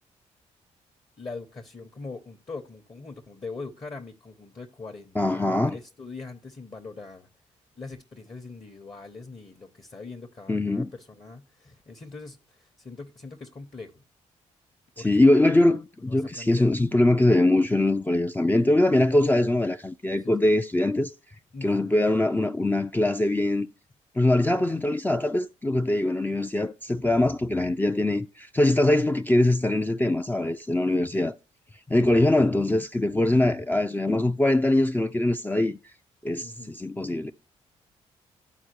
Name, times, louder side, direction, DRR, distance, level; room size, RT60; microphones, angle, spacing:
voice 1, 1.2-7.3 7.8-14.0 15.0-15.3 16.1-16.7 18.6-18.7 20.2-20.3 21.5-21.9 31.1-31.3 36.4-36.7, left 3 dB, 30° left, 0.9 m, -42 dB
voice 2, 5.2-5.8 10.5-10.9 15.0-21.1 21.6-23.7 24.2-31.3 31.9-35.8 36.2-37.3, left 1 dB, 10° left, 0.4 m, -22 dB
12.5 x 4.5 x 2.9 m
hypercardioid pair, 45°, 16 cm